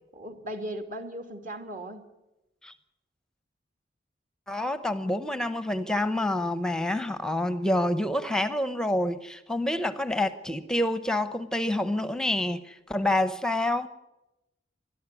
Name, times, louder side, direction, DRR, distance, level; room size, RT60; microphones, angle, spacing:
voice 1, 0.1-2.1, right 1 dB, 45° right, 6 dB, 2.4 m, -37 dB
voice 2, 4.5-13.9, left 1 dB, 5° left, 12 dB, 0.8 m, -27 dB
21.0 x 13.5 x 9.6 m, 0.94 s
head